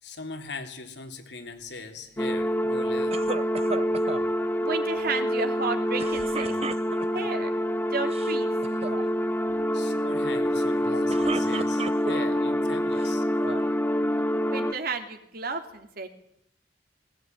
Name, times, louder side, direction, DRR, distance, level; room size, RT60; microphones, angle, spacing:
voice 1, 0.0-3.3 9.7-13.2, left 3 dB, 75° left, 5 dB, 3.4 m, -40 dB
sound 1, 2.2-14.7, equal, 10° left, 0.8 m, -26 dB
sound 2, 3.1-4.3 6.0-7.3 8.0-8.3 8.6-9.0 10.9-12.4 13.0-13.7, right 4 dB, 35° right, 0.9 m, -35 dB
voice 2, 4.6-6.5 7.1-7.5 7.9-8.5 14.5-16.1, right 4 dB, 60° right, 6 dB, 3.0 m, -32 dB
21.0 x 18.0 x 9.3 m, 0.72 s
head